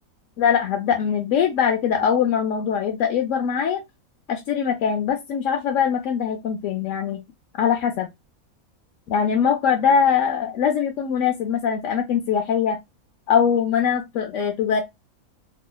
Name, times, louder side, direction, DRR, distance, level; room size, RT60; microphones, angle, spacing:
voice 1, 0.4-3.8 4.3-7.2 7.6-8.1 9.1-12.8 13.3-14.8, left 7 dB, 70° left, 0.8 m, -22 dB
2.8 x 2.0 x 3.8 m
omnidirectional pair, 1.5 m